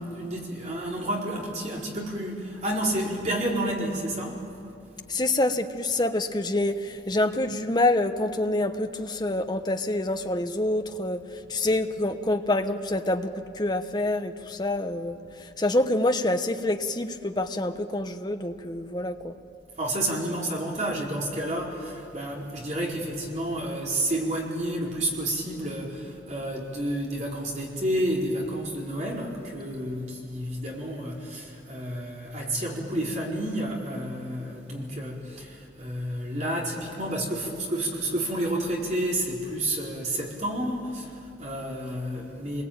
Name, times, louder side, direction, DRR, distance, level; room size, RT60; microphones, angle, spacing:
voice 1, 0.0-4.4 19.8-42.6, right 1 dB, 40° right, -3 dB, 4.6 m, -30 dB
voice 2, 5.1-19.3, left 2 dB, 25° left, 7 dB, 1.0 m, -27 dB
27.5 x 21.5 x 8.9 m, 2.6 s
head